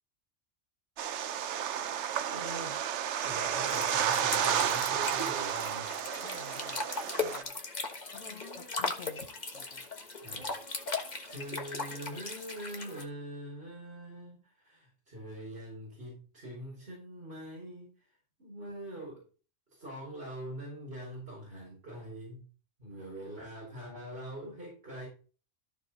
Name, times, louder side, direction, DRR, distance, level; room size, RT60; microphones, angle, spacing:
sound 1, 1.0-7.4, right 9 dB, 70° right, 1.0 m, -32 dB
voice 1, 2.2-2.8 3.2-5.9 10.2-10.5 11.3-17.9 18.4-19.2 19.7-22.4 22.8-25.1, right 1 dB, 55° right, -5 dB, 4.9 m, -43 dB
sound 2, 3.7-13.1, left 3 dB, 35° left, 1.5 m, -38 dB
voice 2, 6.2-6.8 7.2-7.6 8.1-9.3 9.5-9.9, left 5 dB, 60° left, 9 dB, 1.2 m, -50 dB
14.0 x 4.9 x 4.1 m, 0.37 s
omnidirectional pair, 1.2 m